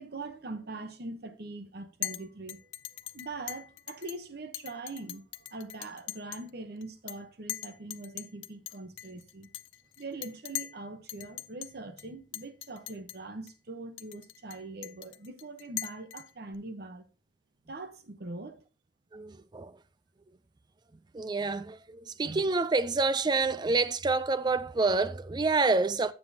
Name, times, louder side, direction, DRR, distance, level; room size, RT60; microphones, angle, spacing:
voice 1, 0.0-2.6 3.1-5.2 5.5-9.5 10.0-17.0 17.7-18.6, right 2 dB, 55° right, 0.9 m, -42 dB
Chink clink, 2.0-2.2 2.5-4.2 4.5-6.5 6.8-7.2 7.5-10.8 11.1-11.7 12.0-12.1 12.3-13.2 13.5-13.6 14.0-16.5, left 14 dB, 85° left, 0.5 m, -40 dB
voice 2, 19.1-19.7 21.1-26.1, right 3 dB, 20° right, 0.4 m, -28 dB
9.5 x 7.5 x 2.8 m
head